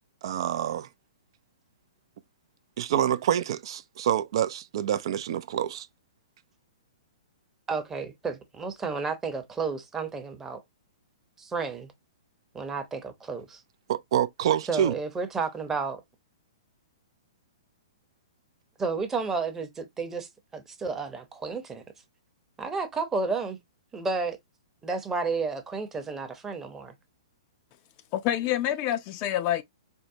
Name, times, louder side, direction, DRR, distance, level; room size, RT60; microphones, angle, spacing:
voice 1, 0.2-0.9 2.8-5.9 13.9-15.0, right 10 dB, 55° right, 0.3 m, -27 dB
voice 2, 7.7-10.6 11.4-11.9 12.5-13.6 14.7-16.0 18.8-21.8 22.6-23.6 23.9-24.4 24.8-26.9, right 4 dB, 15° right, 0.7 m, -31 dB
voice 3, 28.1-29.6, left 12 dB, 35° left, 0.4 m, -27 dB
4.4 x 2.1 x 2.6 m
hypercardioid pair, 135°, 3 cm